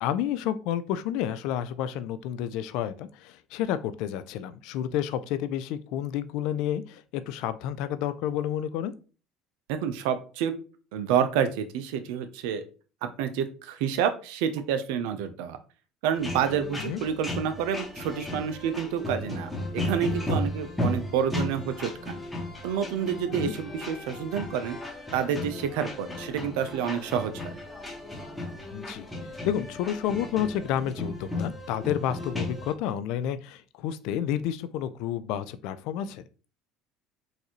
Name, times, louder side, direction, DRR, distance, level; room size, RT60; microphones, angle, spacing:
voice 1, 0.0-8.9 16.8-17.0 23.4-23.5 28.7-29.1 29.4-36.2, left 10 dB, 70° left, 13 dB, 0.3 m, -30 dB
voice 2, 9.7-10.5 10.9-12.6 13.0-15.6 16.0-22.2 22.6-24.8 25.1-27.5, right 8 dB, 75° right, 9 dB, 0.4 m, -29 dB
sound 1, 16.1-32.7, left 1 dB, 10° left, 1.2 m, -35 dB
4.0 x 2.6 x 2.9 m, 0.36 s
hypercardioid pair, 75°, 0 cm